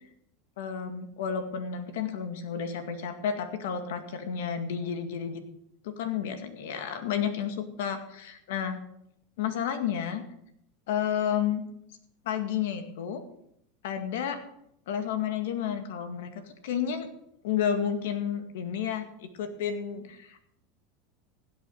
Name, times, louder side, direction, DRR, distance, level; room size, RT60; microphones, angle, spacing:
voice 1, 0.6-5.4 5.8-8.8 9.4-10.2 10.9-11.6 12.3-13.2 13.8-14.4 14.9-17.1 17.4-20.5, left 8 dB, 80° left, 8 dB, 2.1 m, -31 dB
16.0 x 8.4 x 6.4 m, 0.74 s
supercardioid pair, 125°, 0 cm